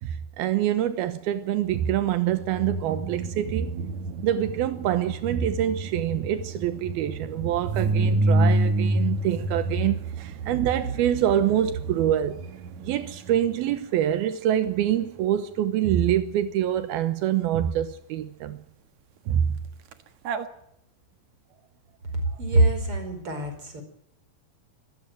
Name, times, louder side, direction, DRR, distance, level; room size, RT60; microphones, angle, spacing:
voice 1, 0.0-3.7 4.2-12.4 12.8-18.6 19.3-19.6, right 11 dB, 85° right, 3.0 m, -25 dB
sound 1, 2.2-13.7 19.9-20.0 20.2-20.4, right 2 dB, 60° right, 2.5 m, -28 dB
voice 2, 22.4-23.8, right 1 dB, 35° right, 5.8 m, -23 dB
25.5 x 15.0 x 9.2 m
omnidirectional pair, 4.3 m